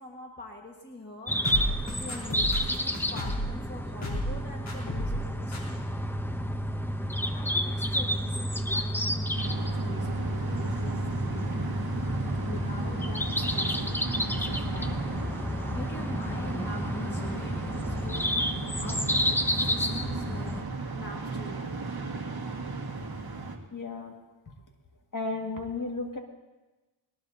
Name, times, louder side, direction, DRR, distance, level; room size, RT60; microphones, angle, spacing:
voice 1, 0.0-1.4 1.8-5.8 7.3-11.6 12.4-13.8 14.2-15.0 15.8-18.3 18.8-20.5 20.9-21.8, left 1 dB, 20° left, 0 dB, 1.7 m, -44 dB
sound 1, 1.3-20.6, equal, 5° left, 0.7 m, -30 dB
sound 2, 1.4-3.5 4.0-4.4 4.7-5.2 5.5-5.6, equal, 90° left, 4.4 m, -32 dB
sound 3, 9.3-23.6, right 3 dB, 50° right, 1.9 m, -35 dB
voice 2, 23.7-24.1 25.1-26.2, left 3 dB, 40° left, 1 dB, 2.1 m, -33 dB
20.5 x 19.5 x 2.8 m, 1.1 s
wide cardioid pair, 100°, 47 cm